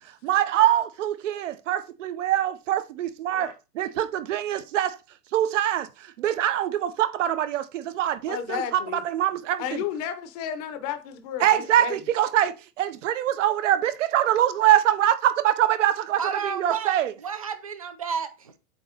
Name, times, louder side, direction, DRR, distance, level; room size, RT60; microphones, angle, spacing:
voice 1, 0.2-5.0 5.3-5.9 6.2-9.6 11.4-16.2 16.5-17.1, right 12 dB, 50° right, 0.8 m, -24 dB
voice 2, 8.3-9.0 9.6-12.0, left 8 dB, 25° left, 0.8 m, -33 dB
voice 3, 16.2-18.6, right 6 dB, 25° right, 0.4 m, -31 dB
8.2 x 3.0 x 5.1 m
hypercardioid pair, 155°, 48 cm